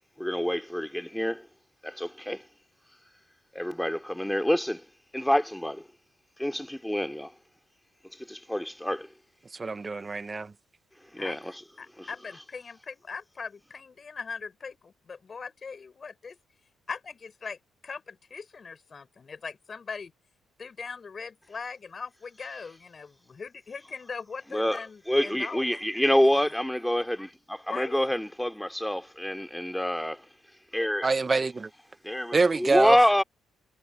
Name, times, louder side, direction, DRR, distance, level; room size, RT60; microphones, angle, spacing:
voice 1, 0.2-1.5 1.8-2.4 3.5-4.8 5.1-5.9 6.4-7.3 8.2-9.1 11.1-11.6 12.0-12.1 24.5-30.3 30.7-31.1 32.0-33.2, left 1 dB, 5° left, 3.0 m, -27 dB
voice 2, 9.5-10.5 31.0-31.7 32.3-33.0, right 3 dB, 30° right, 1.1 m, -25 dB
voice 3, 11.8-16.4 16.9-17.6 17.8-20.1 20.6-26.0 27.7-28.0, left 5 dB, 40° left, 5.7 m, -40 dB
cardioid pair, 90°, 0 cm